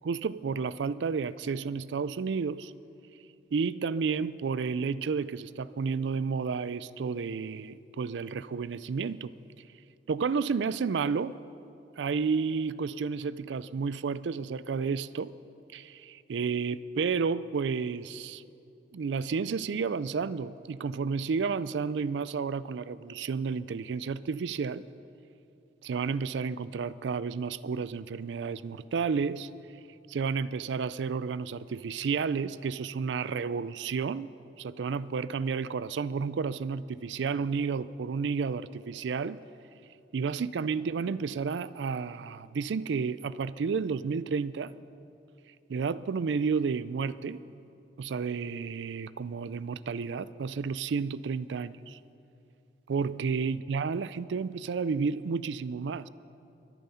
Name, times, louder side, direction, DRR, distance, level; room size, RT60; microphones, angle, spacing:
voice 1, 0.0-2.7 3.5-9.3 10.1-11.4 12.0-15.3 15.7-18.4 18.9-24.8 25.8-29.5 30.1-34.3 34.6-39.4 40.1-44.7 45.7-47.4 48.0-52.0 52.9-56.1, right 5 dB, 85° right, 18 dB, 0.4 m, -31 dB
23.5 x 9.1 x 5.6 m, 2.7 s
head